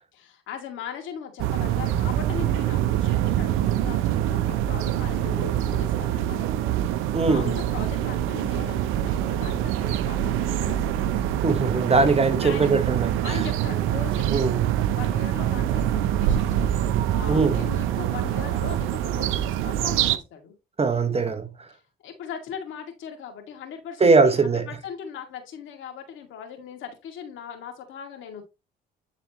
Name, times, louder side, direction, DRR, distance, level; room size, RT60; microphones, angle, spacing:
voice 1, 0.1-10.9 11.9-12.7 13.2-14.6 14.9-16.8 17.1-20.5 22.0-28.4, left 7 dB, 75° left, 2.1 m, -39 dB
sound 1, 1.4-20.2, right 11 dB, 85° right, 0.6 m, -25 dB
voice 2, 7.1-7.6 11.4-13.4 14.3-14.8 17.3-17.7 20.8-21.7 24.0-24.7, right 4 dB, 30° right, 1.0 m, -21 dB
9.3 x 4.0 x 3.0 m
supercardioid pair, 70°, 20 cm